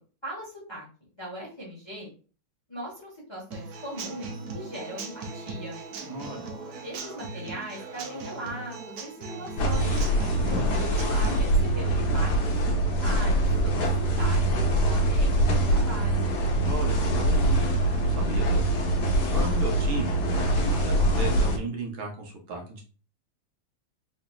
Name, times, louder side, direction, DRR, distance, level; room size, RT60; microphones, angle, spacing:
voice 1, 0.2-0.9 1.1-2.1 2.7-5.8 6.8-13.9 14.2-16.3, right 1 dB, 20° left, -4 dB, 0.9 m, -39 dB
Human voice / Acoustic guitar / Drum, 3.5-11.5, right 3 dB, 65° right, 1.0 m, -39 dB
voice 2, 6.0-6.5 16.6-17.6 18.0-18.8 19.3-22.8, right 1 dB, 85° right, 1 dB, 1.8 m, -35 dB
sound 1, 9.6-21.6, right 1 dB, 65° left, 1.3 m, -24 dB
4.1 x 3.1 x 2.3 m, 0.37 s
omnidirectional pair, 2.1 m